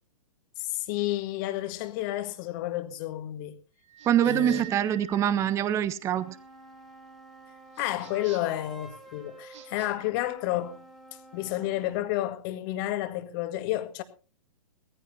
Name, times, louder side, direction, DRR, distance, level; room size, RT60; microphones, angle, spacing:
voice 1, 0.6-3.6 4.2-4.6 7.8-10.8 11.3-14.0, left 15 dB, 35° left, 1.7 m, -31 dB
sound 1, 3.8-6.5, right 10 dB, 35° right, 3.6 m, -46 dB
sound 2, 4.0-4.8 7.7-8.6 9.4-9.9, right 7 dB, 55° right, 7.0 m, -50 dB
voice 2, 4.1-6.4, right 10 dB, 15° right, 0.7 m, -24 dB
sound 3, 5.9-12.1, right 1 dB, ahead, 2.9 m, -50 dB
19.5 x 15.0 x 2.8 m
figure-of-eight pair, 110°, 18 cm